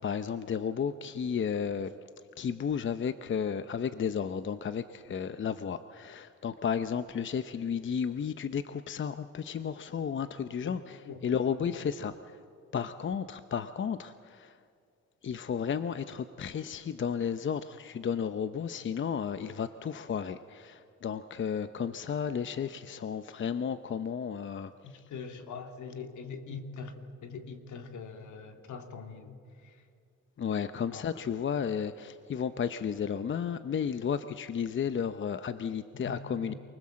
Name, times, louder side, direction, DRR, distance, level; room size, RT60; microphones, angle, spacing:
voice 1, 0.0-2.0 2.4-11.0 11.2-12.4 12.7-14.6 15.2-24.7 30.4-36.5, left 7 dB, 40° left, 12 dB, 0.7 m, -33 dB
voice 2, 11.0-12.1 24.8-29.9 30.9-31.2 36.0-36.6, left 5 dB, 75° left, 5 dB, 2.4 m, -43 dB
28.5 x 20.0 x 7.6 m, 2.4 s
cardioid pair, 90°, 30 cm